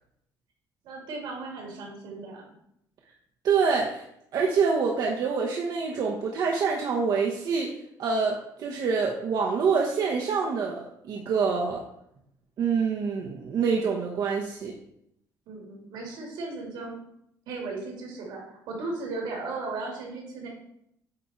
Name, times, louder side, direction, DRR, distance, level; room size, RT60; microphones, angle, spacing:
voice 1, 0.8-2.5 15.5-16.9 17.5-20.5, right 3 dB, 80° right, 0 dB, 2.6 m, -36 dB
voice 2, 3.4-4.0 4.3-7.7 8.0-11.8 12.6-14.7, right 5 dB, 60° right, -1 dB, 0.9 m, -26 dB
8.5 x 3.6 x 4.3 m, 0.75 s
cardioid pair, 120°, 8 cm